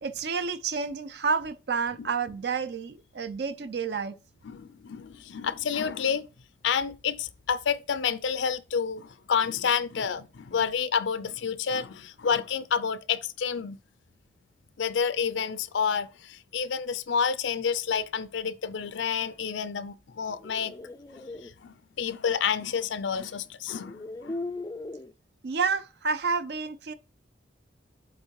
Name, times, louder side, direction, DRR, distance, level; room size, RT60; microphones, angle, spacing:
voice 1, 0.0-4.1 25.4-26.9, right 5 dB, 60° right, 0.5 m, -29 dB
voice 2, 4.4-6.2 6.6-13.8 14.8-20.7 21.1-24.4, left 6 dB, 80° left, 0.5 m, -29 dB
sound 1, 20.2-21.5 23.0-23.1 23.7-25.1, left 2 dB, 20° left, 0.3 m, -38 dB
7.8 x 3.6 x 4.6 m
head